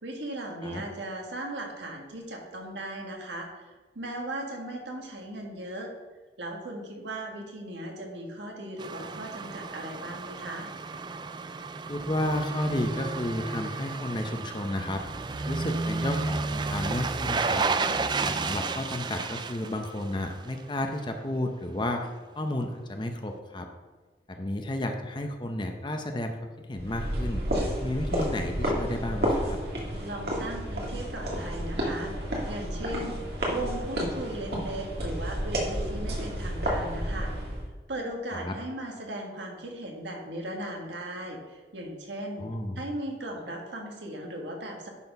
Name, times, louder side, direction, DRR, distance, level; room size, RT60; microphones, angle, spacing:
voice 1, 0.0-3.7 3.9-5.9 6.4-10.7 30.0-33.2 33.5-37.3 37.9-42.5 42.7-44.9, right 1 dB, 90° right, 1 dB, 1.7 m, -37 dB
sound 1, 8.8-20.7 21.0-21.1, right 3 dB, 25° right, 0.3 m, -32 dB
voice 2, 11.9-15.0 15.4-17.7 18.2-23.7 24.3-27.4 27.8-29.6 38.3-38.5 42.4-42.8, left 1 dB, 25° left, 4 dB, 0.7 m, -32 dB
sound 2, 26.8-37.7, equal, 65° right, 2.0 m, -31 dB
11.0 x 4.3 x 5.4 m, 1.3 s
head